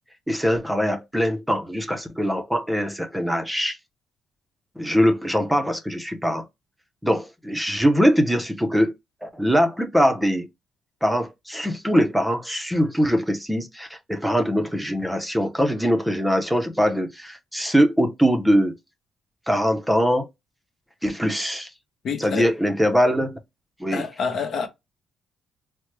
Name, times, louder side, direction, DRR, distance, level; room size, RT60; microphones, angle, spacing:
voice 1, 0.3-3.8 4.8-6.5 7.0-8.9 9.2-10.5 11.0-18.8 19.5-20.3 21.0-21.7 22.2-23.4 23.8-24.0, equal, 5° right, 0.6 m, -22 dB
voice 2, 22.0-22.5 23.9-24.7, left 5 dB, 60° left, 0.7 m, -27 dB
3.2 x 2.0 x 3.0 m
cardioid pair, 90°, 0 cm